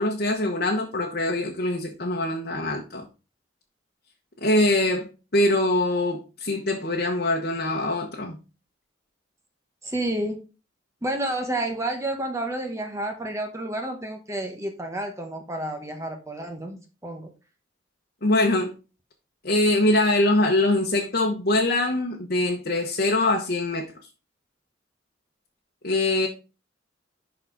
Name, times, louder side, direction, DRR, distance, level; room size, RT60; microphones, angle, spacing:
voice 1, 0.0-3.1 4.4-8.4 18.2-18.8 19.4-23.9 25.8-26.3, left 2 dB, 55° left, 1.2 m, -23 dB
voice 2, 9.8-10.4 11.0-17.3, right 1 dB, 15° right, 1.1 m, -30 dB
11.5 x 4.2 x 3.9 m
head